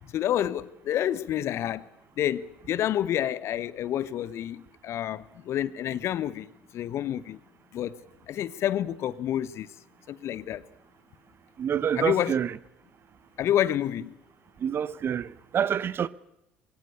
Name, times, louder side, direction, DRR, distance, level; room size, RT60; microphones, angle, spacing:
voice 1, 0.1-1.9 2.2-7.4 7.7-8.0 8.3-9.7 10.1-10.6 11.9-12.3 13.4-14.2, left 11 dB, 50° left, 1.0 m, -29 dB
voice 2, 11.6-12.5 14.6-15.3 15.5-16.1, right 8 dB, 40° right, 0.8 m, -26 dB
22.5 x 17.0 x 8.3 m
figure-of-eight pair, 55°, 6 cm